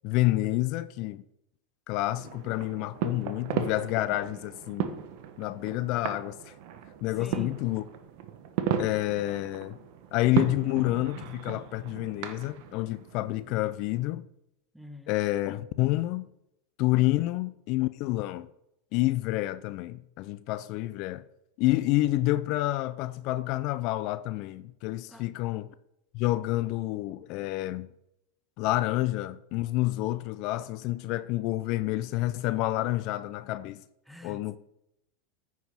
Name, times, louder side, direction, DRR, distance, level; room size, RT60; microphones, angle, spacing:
voice 1, 0.0-1.2 1.9-5.0 5.4-6.5 7.0-7.8 8.8-9.8 10.1-14.2 15.1-16.3 16.8-18.5 18.9-21.2 21.6-25.7 26.1-27.9 28.6-33.8 34.2-34.6, left 17 dB, 55° left, 0.4 m, -28 dB
sound 1, 2.1-13.6, right 9 dB, 60° right, 1.0 m, -36 dB
voice 2, 7.2-7.5 14.7-15.1 25.1-25.3 34.1-34.6, left 1 dB, ahead, 0.9 m, -45 dB
9.2 x 4.9 x 5.6 m
hypercardioid pair, 100°, 0 cm